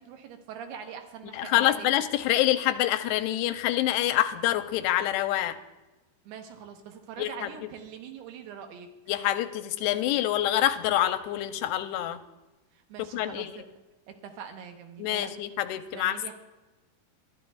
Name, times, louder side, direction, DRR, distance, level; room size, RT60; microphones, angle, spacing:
voice 1, 0.0-1.9 6.2-8.9 12.7-13.6 14.1-15.4 15.9-16.3, right 7 dB, 80° right, 5 dB, 3.1 m, -43 dB
voice 2, 1.3-5.6 7.2-7.5 9.1-12.2 13.1-13.5 15.0-16.3, left 13 dB, 90° left, 10 dB, 2.6 m, -26 dB
21.5 x 12.0 x 2.4 m, 1.1 s
omnidirectional pair, 4.6 m